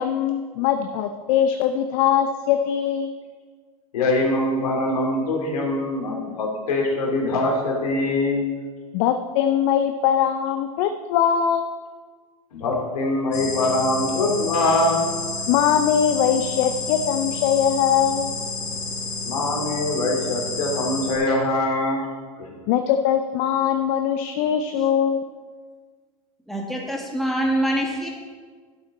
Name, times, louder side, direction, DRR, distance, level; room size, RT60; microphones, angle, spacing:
voice 1, 0.0-3.1 8.9-11.7 15.5-18.3 22.7-25.2, left 9 dB, 55° left, 7 dB, 0.7 m, -21 dB
voice 2, 3.9-8.4 12.5-15.0 19.2-22.0, left 2 dB, 80° left, -1 dB, 2.9 m, -23 dB
sound 1, 13.3-21.2, left 3 dB, 35° left, 2.9 m, -30 dB
voice 3, 26.5-28.1, right 1 dB, ahead, -2 dB, 2.1 m, -24 dB
12.0 x 7.9 x 4.2 m, 1.5 s
hypercardioid pair, 100°, 19 cm